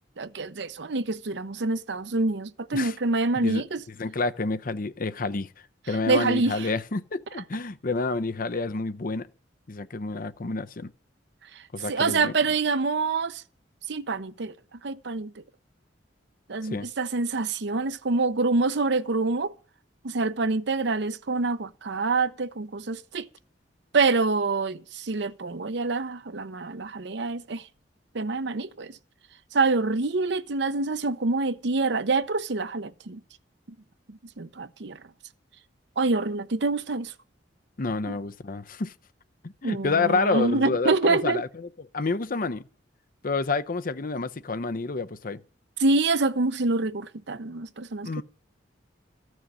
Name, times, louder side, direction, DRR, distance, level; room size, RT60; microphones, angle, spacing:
voice 1, 0.2-3.8 6.1-6.7 11.9-13.4 13.9-14.5 14.8-15.4 16.5-19.5 20.0-23.3 23.9-27.6 28.1-29.0 29.5-33.2 34.1-35.0 36.0-37.1 39.6-41.4 45.8-48.2, right 3 dB, 65° right, 0.7 m, -26 dB
voice 2, 4.0-5.5 5.9-9.3 9.7-10.9 11.7-12.3 16.6-16.9 37.8-38.9 39.4-42.6 43.2-45.4 48.0-48.2, left 3 dB, 50° left, 0.7 m, -29 dB
14.0 x 6.3 x 9.6 m
head